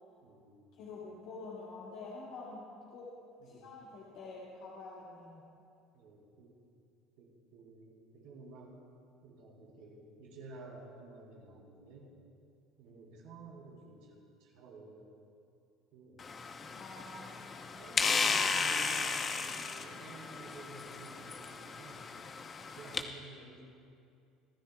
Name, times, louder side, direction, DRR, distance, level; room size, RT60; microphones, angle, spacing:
voice 1, 0.2-0.7 3.4-3.8 5.9-6.5 7.2-8.7 9.2-12.1 12.8-14.1 14.4-15.1 15.9-16.2 17.0-17.3 17.7-22.1 22.8-23.6, right 3 dB, 80° right, -3 dB, 3.6 m, -52 dB
voice 2, 0.7-3.1 3.4-5.4 16.8-17.6, left 3 dB, 70° left, -7 dB, 2.3 m, -47 dB
sound 1, 16.2-23.0, left 5 dB, 30° left, 0.9 m, -35 dB
24.5 x 12.5 x 2.4 m, 2.5 s
supercardioid pair, 105°, 0 cm